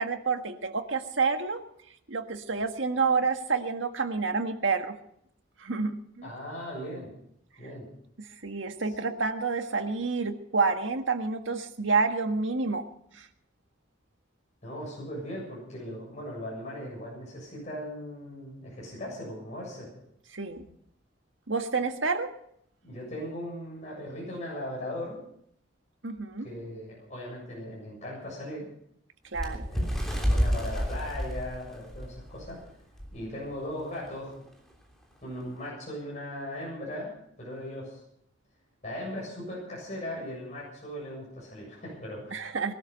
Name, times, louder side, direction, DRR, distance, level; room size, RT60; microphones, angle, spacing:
voice 1, 0.0-1.6 2.1-5.0 5.6-6.3 8.2-12.8 13.1-13.3 20.3-20.6 21.5-22.4 26.0-26.5 29.3-29.7 42.3-42.7, right 4 dB, 85° right, 6 dB, 1.6 m, -29 dB
voice 2, 6.2-7.1 7.6-7.9 8.9-9.1 14.6-19.9 22.8-25.2 26.4-28.7 29.4-32.6 33.1-34.5 35.2-38.0 38.8-42.6, left 1 dB, 40° left, -4 dB, 7.4 m, -38 dB
Bird, 29.3-32.5 33.0-33.2 33.4-33.7 34.5-34.6, equal, ahead, 3.3 m, -29 dB
21.0 x 12.5 x 5.3 m, 0.70 s
head